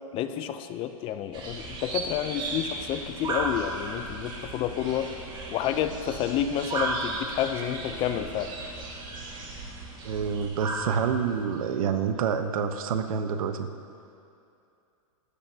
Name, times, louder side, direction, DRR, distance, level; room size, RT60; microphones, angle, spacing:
voice 1, 0.1-5.1 5.5-8.5, left 10 dB, 30° left, 10 dB, 0.6 m, -30 dB
sound 1, 1.3-11.7, right 3 dB, 25° right, 2.1 m, -35 dB
voice 2, 10.0-13.7, right 6 dB, 70° right, 8 dB, 1.0 m, -27 dB
22.5 x 13.5 x 2.8 m, 2.6 s
hypercardioid pair, 135°, 18 cm